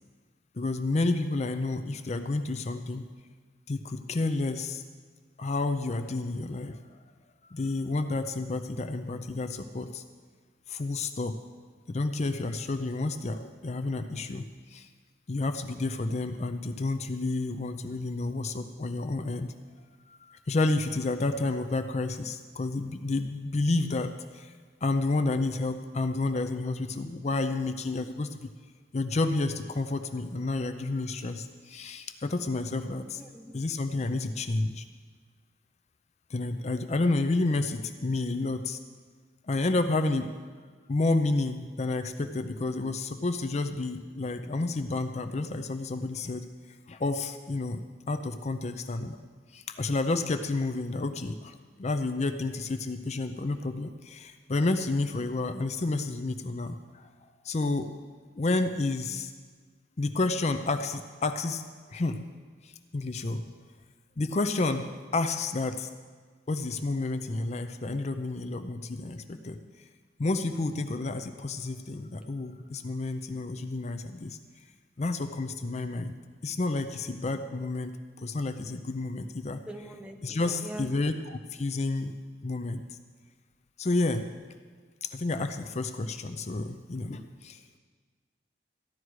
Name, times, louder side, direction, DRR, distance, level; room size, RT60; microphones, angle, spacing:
voice 1, 0.5-3.0 3.7-4.8 5.4-6.8 7.5-10.0 10.7-11.3 11.9-14.4 14.7-14.9 15.3-19.5 20.1-24.5 24.8-28.4 28.9-33.2 33.5-34.8 36.3-38.8 39.5-40.3 40.9-46.5 46.9-49.2 49.5-57.1 57.4-57.9 58.4-59.3 60.0-61.6 61.9-62.2 62.6-63.5 64.2-65.9 66.5-69.6 70.2-74.4 75.0-79.6 80.2-82.1 82.4-82.8 83.8-84.3 85.0-87.6, left 2 dB, 40° left, 8 dB, 0.5 m, -30 dB
voice 2, 33.2-33.5 79.7-80.9, right 1 dB, 5° right, 4 dB, 0.7 m, -42 dB
14.5 x 11.5 x 4.7 m, 1.5 s
head